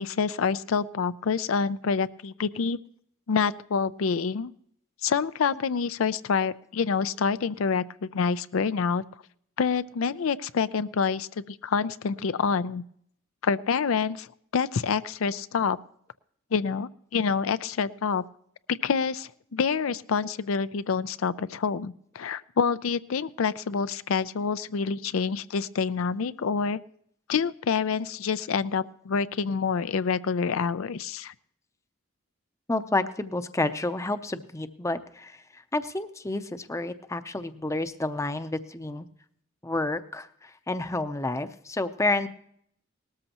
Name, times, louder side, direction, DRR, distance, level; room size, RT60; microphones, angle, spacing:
voice 1, 0.0-2.8 3.3-4.5 5.0-9.0 9.6-12.8 13.4-14.3 14.5-15.8 16.5-18.2 18.7-26.8 27.3-31.3, left 5 dB, 90° left, 14 dB, 0.5 m, -27 dB
voice 2, 32.7-35.3 35.7-39.1 39.6-42.3, left 2 dB, 15° left, 11 dB, 0.6 m, -30 dB
19.0 x 13.5 x 2.9 m, 0.67 s
head